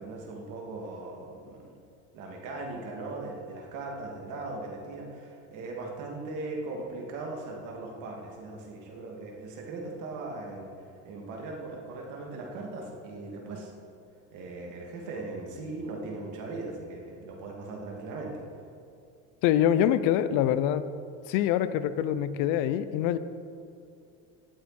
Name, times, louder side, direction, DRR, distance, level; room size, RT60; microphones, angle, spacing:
voice 1, 0.0-1.6 2.1-10.7 11.0-13.7 14.3-18.4, right 2 dB, 65° right, 0 dB, 2.6 m, -39 dB
voice 2, 19.4-20.8 21.3-23.2, left 10 dB, 70° left, 14 dB, 0.7 m, -25 dB
19.0 x 7.6 x 4.4 m, 2.4 s
supercardioid pair, 115°, 32 cm